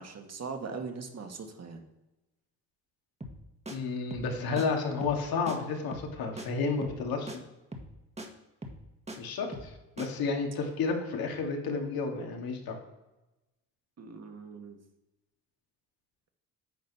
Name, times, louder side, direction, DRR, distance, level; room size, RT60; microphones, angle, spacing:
voice 1, 0.0-1.8 14.0-14.8, right 4 dB, 40° right, 4 dB, 1.8 m, -40 dB
sound 1, 3.2-3.4 3.7-3.8 4.1-4.3 4.6-4.7 5.0-5.2 5.5-5.6 5.9-6.1 6.4-6.5 6.8-7.0 7.3-7.4 7.7-8.3 8.6-9.2 9.5-9.7 10.0-10.1, right 1 dB, 15° right, 1.7 m, -41 dB
voice 2, 3.7-7.3 9.2-12.8, left 4 dB, 70° left, 2 dB, 2.3 m, -31 dB
9.5 x 5.2 x 5.6 m, 1.0 s
supercardioid pair, 75°, 38 cm